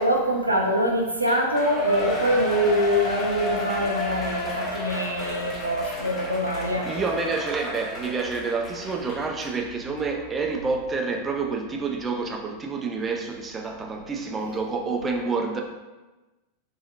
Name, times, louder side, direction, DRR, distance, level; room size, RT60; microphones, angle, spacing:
voice 1, 0.0-7.0, equal, 85° right, 0 dB, 0.4 m, -24 dB
Shout / Cheering, 1.2-9.6 10.0-10.1, left 1 dB, 25° left, 0.7 m, -32 dB
voice 2, 6.8-15.6, right 4 dB, 20° right, 3 dB, 0.3 m, -28 dB
3.0 x 2.7 x 2.7 m, 1.1 s
figure-of-eight pair, 90°, 0 cm